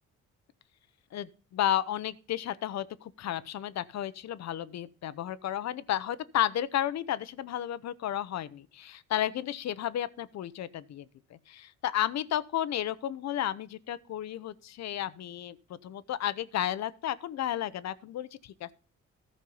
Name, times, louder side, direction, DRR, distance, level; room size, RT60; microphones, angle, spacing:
voice 1, 1.1-11.1 11.5-15.6 15.8-18.7, left 11 dB, 60° left, 0.7 m, -32 dB
14.0 x 5.4 x 5.4 m
cardioid pair, 90°, 30 cm